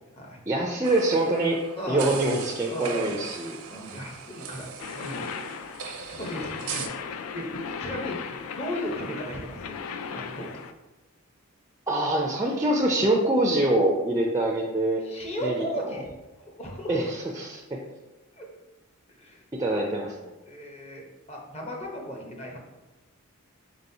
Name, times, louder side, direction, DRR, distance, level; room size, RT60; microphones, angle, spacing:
voice 1, 0.5-1.6 1.9-3.6 11.9-15.0 15.4-15.5 15.9-16.0 16.9-17.8 19.6-20.1, right 1 dB, 15° right, 0 dB, 0.3 m, -24 dB
sound 1, 0.8-6.9, right 6 dB, 75° right, 0.5 m, -39 dB
voice 2, 1.8-2.1 2.6-3.1 3.6-6.9 7.3-7.5 7.8-8.2 8.6-9.7 10.1-10.6 15.0-16.1 16.4-17.0 18.4-18.5 19.2-19.4 20.4-22.6, equal, 30° left, 0 dB, 0.7 m, -36 dB
sound 2, 4.8-10.7, left 6 dB, 80° left, 0.3 m, -37 dB
4.1 x 3.8 x 2.7 m, 1.1 s
head